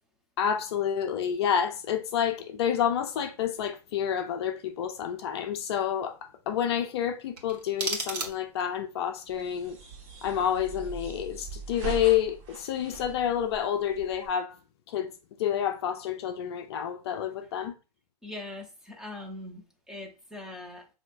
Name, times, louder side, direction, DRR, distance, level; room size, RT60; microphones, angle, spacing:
voice 1, 0.4-9.8 10.2-14.6 14.9-15.1 15.4-17.7, left 9 dB, 40° left, 0.4 m, -29 dB
sound 1, 7.3-8.8, right 3 dB, 80° right, 1.2 m, -34 dB
sound 2, 9.3-14.3, right 5 dB, 50° right, 1.5 m, -41 dB
voice 2, 18.2-20.9, left 2 dB, 5° right, 0.6 m, -41 dB
5.6 x 2.7 x 2.5 m
hypercardioid pair, 125°, 20 cm